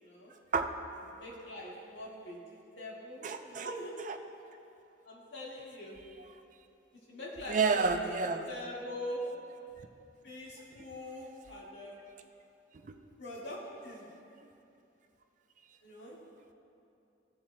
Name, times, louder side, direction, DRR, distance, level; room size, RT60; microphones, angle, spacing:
voice 1, 0.0-0.3 1.1-4.0 5.1-6.0 7.1-8.1 8.5-9.2 10.2-12.0 13.2-14.1 15.8-16.2, left 1 dB, 75° left, -5 dB, 1.8 m, -43 dB
voice 2, 3.2-3.7 4.0-4.2 7.5-8.5 12.8-12.9, right 4 dB, 45° right, 6 dB, 0.4 m, -30 dB
16.0 x 7.3 x 2.2 m, 2.7 s
head